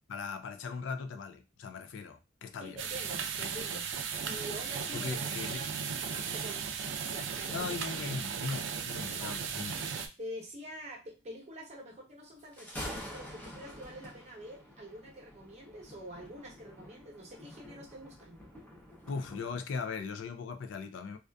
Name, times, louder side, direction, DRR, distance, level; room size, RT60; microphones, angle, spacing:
voice 1, 0.1-2.8 4.9-5.6 7.5-9.8 19.1-21.2, left 5 dB, 85° left, 0.4 m, -39 dB
voice 2, 2.6-3.9 4.2-5.2 5.5-5.7 6.0-6.6 7.0-7.7 9.2-9.4 10.2-18.4, equal, 35° right, 0.8 m, -46 dB
sound 1, 2.8-10.1, right 6 dB, 80° right, 0.4 m, -36 dB
Thunder, 12.4-19.6, equal, 10° left, 0.5 m, -47 dB
2.5 x 2.3 x 2.2 m
head